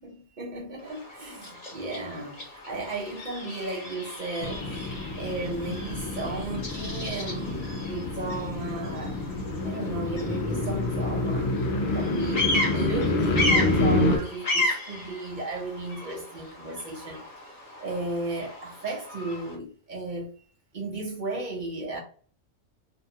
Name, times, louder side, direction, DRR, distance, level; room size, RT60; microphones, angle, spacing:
voice 1, 0.0-4.9 5.2-9.2 9.6-17.2 17.8-20.4 20.7-22.0, right 2 dB, 45° right, 0.7 m, -35 dB
Bird vocalization bird call bird song, 0.8-19.6, left 2 dB, 35° left, 0.9 m, -34 dB
sound 1, 4.4-14.2, left 2 dB, 60° left, 0.8 m, -28 dB
2.7 x 2.2 x 2.7 m
omnidirectional pair, 1.3 m